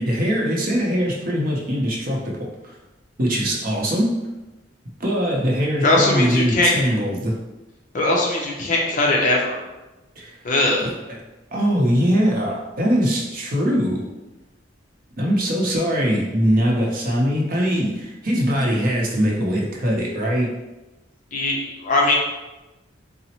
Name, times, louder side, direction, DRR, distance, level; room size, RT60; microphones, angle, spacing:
voice 1, 0.0-2.5 3.2-4.3 5.0-7.4 10.2-10.4 10.8-10.9 11.5-14.0 15.2-20.5, equal, 50° right, -2 dB, 0.7 m, -21 dB
voice 2, 5.8-6.7 7.9-9.6 10.4-10.9 21.3-22.1, left 2 dB, 45° left, -2 dB, 0.6 m, -20 dB
4.0 x 2.0 x 2.8 m, 1.1 s
head